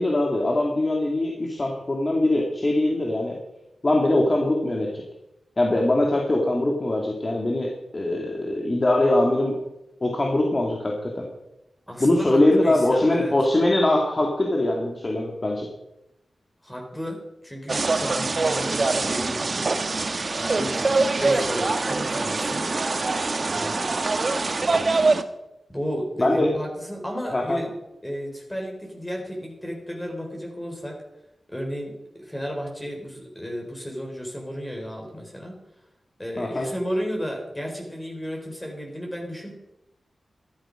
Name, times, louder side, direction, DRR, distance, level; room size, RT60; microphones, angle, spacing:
voice 1, 0.0-3.4 3.8-5.0 5.6-9.6 10.0-11.2 12.0-15.7 26.2-26.5 27.3-27.6 36.4-36.7, left 1 dB, 35° left, 0 dB, 2.4 m, -22 dB
voice 2, 11.9-13.3 16.6-20.0 20.4-22.6 23.5-24.0 25.7-27.7 28.0-31.0 31.5-35.6 36.2-39.5, equal, 10° left, 0 dB, 3.9 m, -33 dB
sound 1, 17.7-25.2, right 3 dB, 50° right, 1.1 m, -24 dB
13.0 x 12.0 x 5.1 m, 0.88 s
cardioid pair, 70°, 0 cm